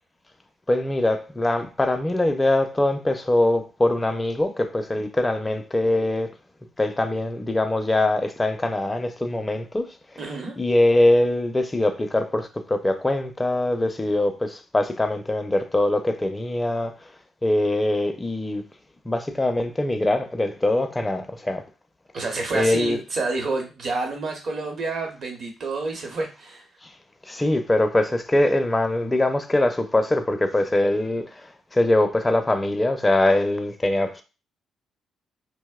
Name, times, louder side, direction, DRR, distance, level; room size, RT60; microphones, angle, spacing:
voice 1, 0.7-6.3 6.8-9.9 10.6-16.9 17.4-18.6 19.1-21.6 22.5-23.0 27.3-34.2, left 1 dB, 20° left, 0.4 m, -22 dB
voice 2, 10.2-10.5 22.1-26.7, right 3 dB, 60° right, 0.9 m, -29 dB
2.6 x 2.0 x 2.3 m
supercardioid pair, 65°, 0 cm